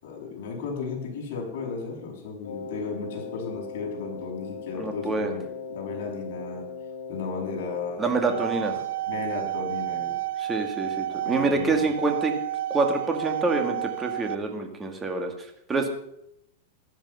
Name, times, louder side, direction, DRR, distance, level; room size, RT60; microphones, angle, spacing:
voice 1, 0.0-5.4 5.7-6.6 7.1-8.8 9.1-10.1 11.1-11.9, left 4 dB, 55° left, -1 dB, 6.8 m, -35 dB
Wind instrument woodwind instrument, 2.4-8.2, left 4 dB, 90° left, 1.6 m, -39 dB
voice 2, 4.8-5.3 8.0-8.7 10.4-12.3 12.7-15.9, right 3 dB, 15° right, 4 dB, 2.1 m, -26 dB
sound 1, 8.1-14.4, right 13 dB, 70° right, 0.7 m, -31 dB
15.5 x 12.5 x 5.7 m, 0.78 s
supercardioid pair, 155°, 0 cm